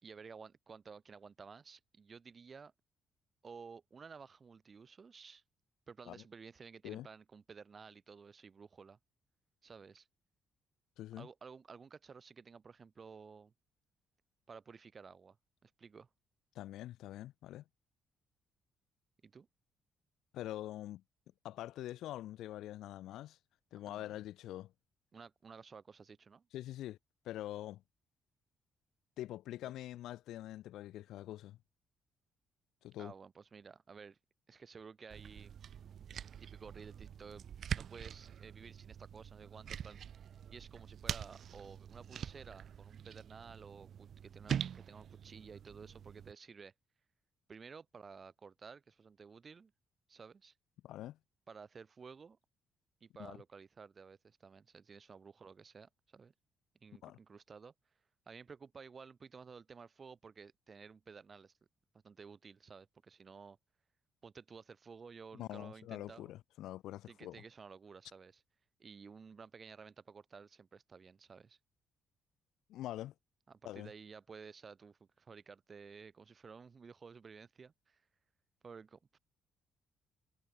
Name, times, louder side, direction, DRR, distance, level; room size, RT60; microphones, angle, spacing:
voice 1, 0.0-2.7 3.4-5.4 5.9-9.0 9.6-10.1 11.2-13.5 14.5-15.4 15.6-16.1 19.2-19.5 23.9-24.2 25.1-26.5 29.8-29.9 33.0-34.2 34.5-35.5 36.4-40.0 40.5-46.7 47.5-49.7 50.1-50.5 51.5-52.4 53.0-56.3 56.8-57.7 58.3-61.5 62.0-63.6 64.2-66.3 67.1-68.4 68.8-71.6 73.5-78.0 78.6-79.2, right 5 dB, 40° right, 5.6 m, -54 dB
voice 2, 11.0-11.3 16.5-17.6 20.3-21.0 21.4-23.4 23.7-24.7 26.5-27.0 27.2-27.8 29.2-31.6 32.8-33.1 50.8-51.2 53.2-53.4 57.0-57.2 65.3-67.4 72.7-73.1 73.6-73.9, left 14 dB, 85° left, 4.8 m, -45 dB
sound 1, 35.1-46.3, right 8 dB, 60° right, 2.5 m, -44 dB
cardioid pair, 90°, 0 cm